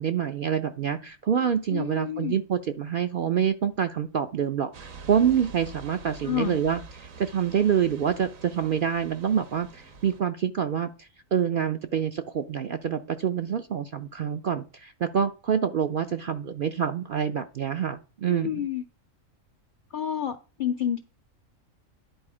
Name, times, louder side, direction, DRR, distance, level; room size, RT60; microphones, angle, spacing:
voice 1, 0.0-18.6, right 8 dB, 65° right, 0.5 m, -27 dB
voice 2, 1.7-2.4 6.2-6.6 18.3-18.8 19.9-21.0, left 9 dB, 65° left, 0.5 m, -29 dB
sound 1, 4.7-10.2, right 5 dB, 80° right, 1.5 m, -45 dB
10.5 x 4.1 x 4.9 m
omnidirectional pair, 1.4 m